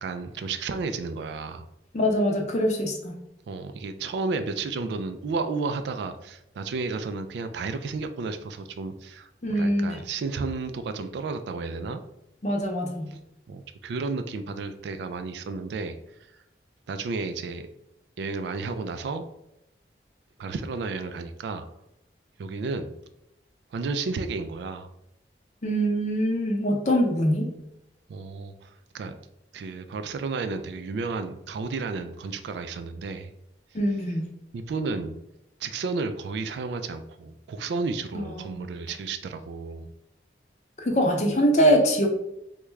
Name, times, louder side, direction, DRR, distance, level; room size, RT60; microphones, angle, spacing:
voice 1, 0.0-1.6 3.5-12.0 13.5-16.0 16.9-17.7 18.2-19.3 20.4-21.6 22.4-22.9 23.7-24.9 28.1-29.1 29.5-33.3 34.5-35.2 35.6-39.9, right 4 dB, 70° right, 8 dB, 0.3 m, -32 dB
voice 2, 1.9-3.2 9.4-10.0 12.4-13.2 25.6-27.5 33.7-34.3 38.1-39.0 40.8-42.1, equal, 40° left, 2 dB, 0.5 m, -24 dB
3.5 x 2.2 x 3.1 m, 0.83 s
head